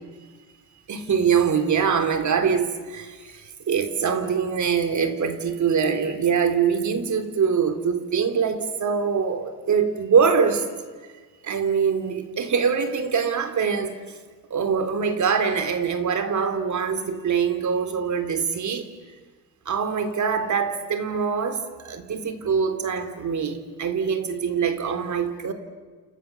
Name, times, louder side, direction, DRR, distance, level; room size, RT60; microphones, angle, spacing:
voice 1, 0.9-10.6 11.4-14.2 14.5-18.9 19.6-25.5, right 6 dB, 50° right, 3.3 m, -23 dB
30.0 x 28.0 x 7.0 m
cardioid pair, 80°, 36 cm